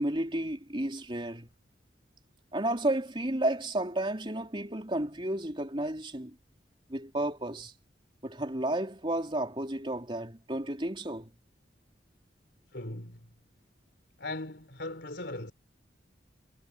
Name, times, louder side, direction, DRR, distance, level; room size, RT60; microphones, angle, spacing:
voice 1, 0.0-1.5 2.5-6.4 6.9-7.7 8.2-11.3, right 1 dB, 30° right, 3.7 m, -32 dB
voice 2, 12.7-13.3 14.2-15.5, left 2 dB, 70° left, 4.0 m, -39 dB
head